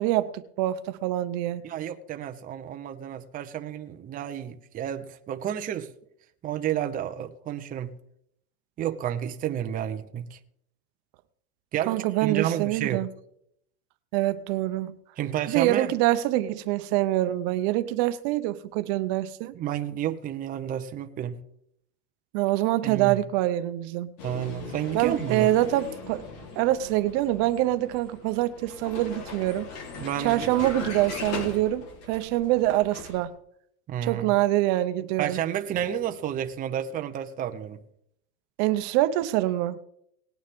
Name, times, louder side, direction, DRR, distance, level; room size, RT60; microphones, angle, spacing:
voice 1, 0.0-1.6 11.9-13.1 14.1-14.9 15.5-19.5 22.3-24.1 24.9-26.2 26.6-29.7 30.2-33.3 34.0-35.4 38.6-39.8, right 15 dB, 55° right, 0.8 m, -25 dB
voice 2, 1.6-5.9 6.4-7.9 8.8-10.4 11.7-13.0 15.2-15.9 19.5-21.4 22.8-23.2 24.2-25.5 30.0-30.5 33.9-34.3 35.2-37.8, right 10 dB, 25° right, 0.7 m, -31 dB
Vehicle, 24.2-33.3, left 4 dB, 55° left, 3.5 m, -40 dB
19.0 x 9.3 x 3.6 m
supercardioid pair, 150°, 34 cm